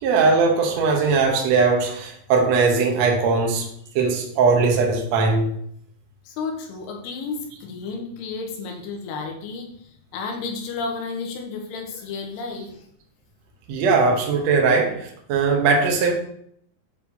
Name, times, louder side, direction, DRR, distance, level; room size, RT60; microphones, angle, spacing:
voice 1, 0.0-3.7 3.9-5.5 13.7-16.1, right 4 dB, 75° right, 0 dB, 1.5 m, -19 dB
voice 2, 6.2-12.9, left 4 dB, 85° left, 2 dB, 3.0 m, -32 dB
7.9 x 4.5 x 2.8 m, 0.68 s
omnidirectional pair, 4.7 m